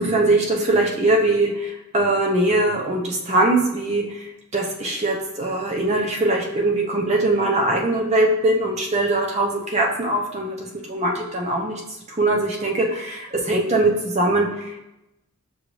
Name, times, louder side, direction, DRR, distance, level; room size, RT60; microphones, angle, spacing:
voice 1, 0.0-11.8 12.1-14.8, right 2 dB, 30° right, 0 dB, 0.6 m, -21 dB
6.1 x 2.6 x 3.0 m, 0.91 s
head